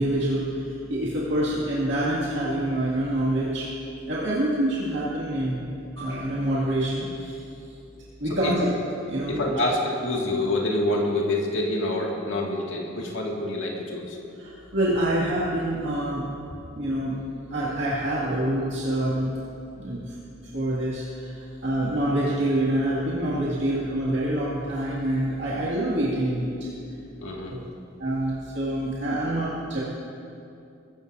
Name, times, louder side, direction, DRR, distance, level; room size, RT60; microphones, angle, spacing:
voice 1, 0.0-3.7 4.1-7.4 8.2-8.7 9.1-9.6 14.4-16.2 16.8-17.2 17.5-19.3 19.7-20.1 20.5-26.7 27.5-27.6 28.0-29.8, right 1 dB, 65° right, -7 dB, 2.2 m, -26 dB
voice 2, 8.3-8.7 9.3-14.2 27.2-27.5, left 1 dB, 70° left, -2 dB, 2.1 m, -27 dB
22.5 x 14.0 x 2.7 m, 2.6 s
head